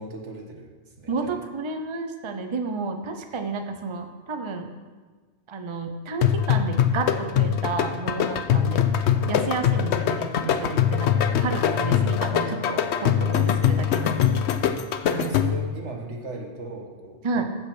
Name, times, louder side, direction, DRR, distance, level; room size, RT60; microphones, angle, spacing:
voice 1, 0.0-1.4 8.5-8.8 11.1-11.7 14.1-17.4, right 2 dB, 80° right, 1 dB, 1.8 m, -39 dB
voice 2, 1.1-4.7 5.5-8.9 9.3-11.1 11.4-14.3 15.1-15.3 17.2-17.4, right 3 dB, 30° right, 6 dB, 0.7 m, -31 dB
sound 1, 6.2-15.7, left 9 dB, 75° left, 0.9 m, -23 dB
15.0 x 5.6 x 6.1 m, 1.4 s
omnidirectional pair, 1.2 m